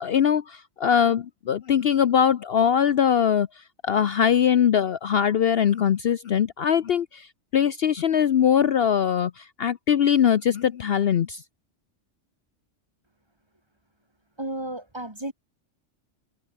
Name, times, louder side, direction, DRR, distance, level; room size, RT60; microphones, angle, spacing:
voice 1, 0.0-3.5 3.8-7.3 7.5-11.4, left 8 dB, 60° left, 0.9 m, -21 dB
voice 2, 14.4-15.3, right 1 dB, 20° right, 2.5 m, -33 dB
omnidirectional pair, 1.3 m